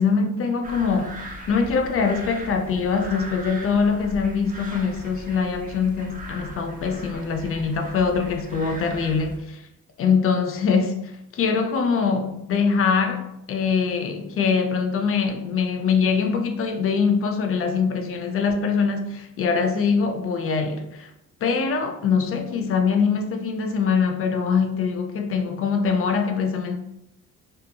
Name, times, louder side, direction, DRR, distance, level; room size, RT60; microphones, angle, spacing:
voice 1, 0.0-9.4 10.0-21.1 21.4-26.8, left 5 dB, 45° left, 0.5 m, -23 dB
sound 1, 0.6-9.4, right 1 dB, 25° right, 0.7 m, -39 dB
2.7 x 2.5 x 2.2 m
cardioid pair, 90°, 30 cm